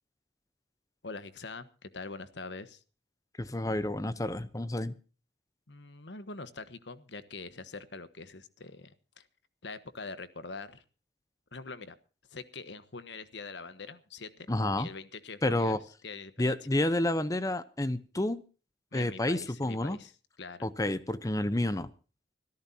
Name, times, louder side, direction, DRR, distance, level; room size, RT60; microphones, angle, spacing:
voice 1, 1.0-2.8 5.7-9.3 9.6-10.8 11.5-12.0 12.3-14.5 14.8-15.8 16.0-16.6 18.9-20.1 20.4-20.7, left 3 dB, 85° left, 13 dB, 1.3 m, -44 dB
voice 2, 3.4-4.9 14.5-14.9 15.4-15.8 16.4-18.4 18.9-20.0 20.6-21.9, left 1 dB, 20° left, 14 dB, 0.8 m, -30 dB
25.0 x 13.5 x 2.8 m, 0.36 s
head